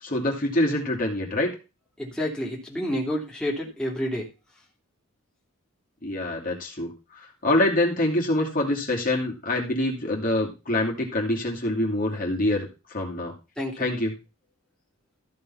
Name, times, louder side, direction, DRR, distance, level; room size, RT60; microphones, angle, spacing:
voice 1, 0.0-1.5 6.0-13.3 13.8-14.1, left 1 dB, 40° left, -1 dB, 2.7 m, -25 dB
voice 2, 2.0-4.3 13.6-13.9, equal, 5° left, -2 dB, 2.8 m, -29 dB
14.0 x 5.6 x 5.6 m, 0.29 s
head